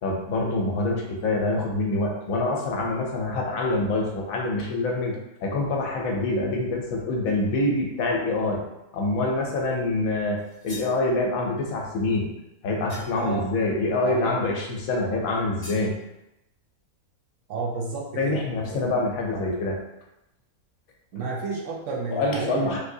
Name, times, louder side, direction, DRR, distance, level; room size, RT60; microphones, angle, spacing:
voice 1, 0.0-8.6 8.9-12.3 12.6-16.0 18.2-19.8 21.1-21.2 22.1-22.8, left 2 dB, 75° left, 0 dB, 1.0 m, -26 dB
sound 1, 10.4-11.0 12.9-13.3 15.6-15.9, left 2 dB, 15° left, 1.0 m, -43 dB
voice 2, 13.1-13.5 14.0-14.4 17.5-18.4 18.7-18.9 21.1-22.8, right 3 dB, 65° right, -1 dB, 0.8 m, -31 dB
3.6 x 2.7 x 2.6 m, 0.91 s
omnidirectional pair, 1.5 m